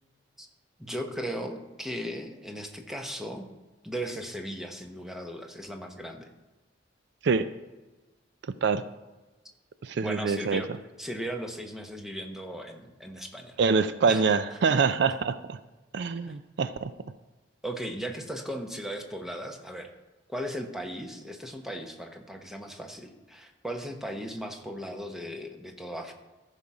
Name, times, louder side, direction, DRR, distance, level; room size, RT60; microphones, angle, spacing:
voice 1, 0.8-3.4 3.8-6.3 10.0-10.7 11.0-13.6 14.1-14.4 16.3-16.4 17.6-19.9 20.3-26.1, equal, ahead, 3 dB, 1.0 m, -37 dB
voice 2, 9.8-10.6 13.6-15.6 15.9-16.9, right 5 dB, 65° right, 12 dB, 0.4 m, -25 dB
14.5 x 5.7 x 4.9 m, 1.2 s
head